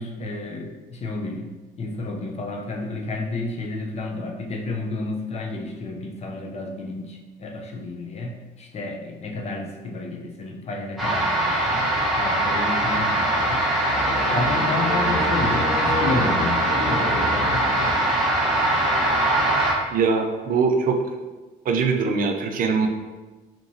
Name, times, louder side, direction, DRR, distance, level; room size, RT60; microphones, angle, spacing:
voice 1, 0.0-11.9 12.1-13.7 14.3-17.7, left 2 dB, 40° left, 1 dB, 0.7 m, -31 dB
sound 1, 11.0-19.7, right 1 dB, ahead, 1.1 m, -22 dB
sound 2, 13.8-18.5, left 2 dB, 65° left, 0.9 m, -31 dB
voice 2, 19.9-21.0 21.7-22.9, right 5 dB, 55° right, 4 dB, 0.5 m, -22 dB
5.3 x 2.9 x 2.7 m, 1.2 s
cardioid pair, 110°, 17 cm